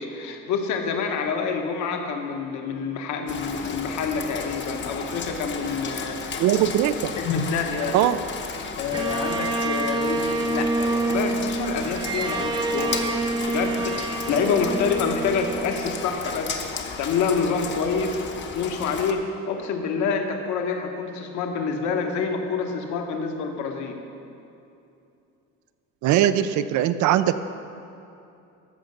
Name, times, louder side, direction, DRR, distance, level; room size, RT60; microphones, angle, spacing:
voice 1, 0.0-6.4 7.2-8.0 8.8-13.0 13.5-16.6 17.0-18.2 18.5-24.0, left 5 dB, 70° left, 4 dB, 1.2 m, -27 dB
Rain, 3.3-19.1, left 5 dB, 40° left, 0.8 m, -34 dB
voice 2, 6.4-7.1 7.9-8.2 26.0-27.4, right 11 dB, 70° right, 12 dB, 0.5 m, -20 dB
Bowed string instrument, 8.9-16.2, right 2 dB, 15° right, 0.5 m, -27 dB
14.0 x 5.8 x 6.5 m, 2.7 s
cardioid pair, 160°, 30 cm